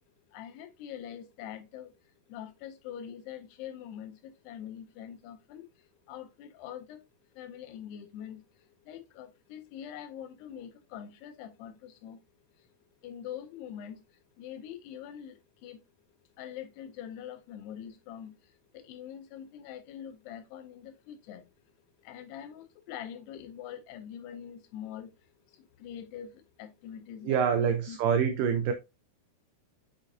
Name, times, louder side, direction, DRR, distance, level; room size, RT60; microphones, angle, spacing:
voice 1, 0.3-7.1 7.3-12.2 12.5-12.7 13.0-15.8 16.3-21.5 22.0-28.0, left 9 dB, 85° left, 2.8 m, -44 dB
voice 2, 27.2-28.7, right 7 dB, 85° right, 1.9 m, -26 dB
6.4 x 6.2 x 2.7 m
omnidirectional pair, 4.7 m